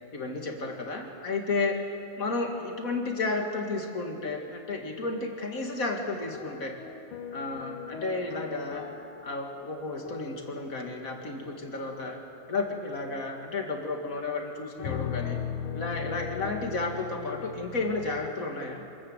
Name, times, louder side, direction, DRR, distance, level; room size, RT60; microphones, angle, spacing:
voice 1, 0.1-1.8 2.2-6.8 7.3-8.8 9.2-12.2 12.5-15.4 15.7-18.8, left 3 dB, 40° left, 2 dB, 2.4 m, -32 dB
sound 1, 6.3-10.8 11.5-11.9 14.8-18.3, left 8 dB, 70° left, 1.7 m, -39 dB
26.5 x 14.0 x 8.2 m, 2.7 s
omnidirectional pair, 2.4 m